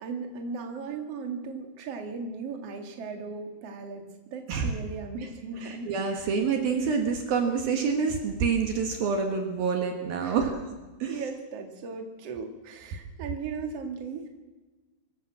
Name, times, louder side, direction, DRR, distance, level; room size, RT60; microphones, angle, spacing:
voice 1, 0.0-4.0 4.3-6.3 10.2-10.5 11.1-14.3, right 5 dB, 45° right, 3 dB, 2.8 m, -37 dB
voice 2, 5.6-10.5 11.0-11.2, right 5 dB, 65° right, 3 dB, 3.4 m, -27 dB
24.0 x 14.0 x 7.6 m, 1.2 s
omnidirectional pair, 4.7 m